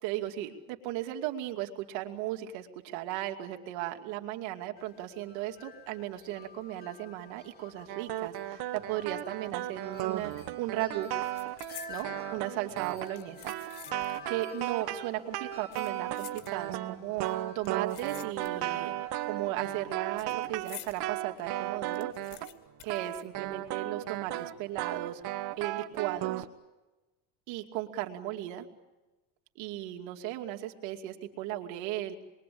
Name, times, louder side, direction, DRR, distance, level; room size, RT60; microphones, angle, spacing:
voice 1, 0.0-11.1 11.9-13.5 14.3-22.1 22.8-25.2 25.6-26.5 27.5-28.7 29.6-32.2, right 13 dB, 75° right, 3 dB, 2.8 m, -36 dB
Wind chime, 4.8-22.7, left 3 dB, 20° left, 3.6 m, -51 dB
sound 1, 7.9-22.6 22.9-26.5, right 15 dB, 55° right, 1.4 m, -35 dB
sound 2, 10.2-10.5 10.7-12.1 12.9-14.3 14.6-14.7 15.5-16.9 17.6-18.8 19.1-21.1 21.5-21.6 21.7-23.9 24.1-24.2 24.9-25.3 25.8-26.0, left 12 dB, 80° left, 2.4 m, -50 dB
27.5 x 22.5 x 8.6 m, 1.1 s
cardioid pair, 135°, 45 cm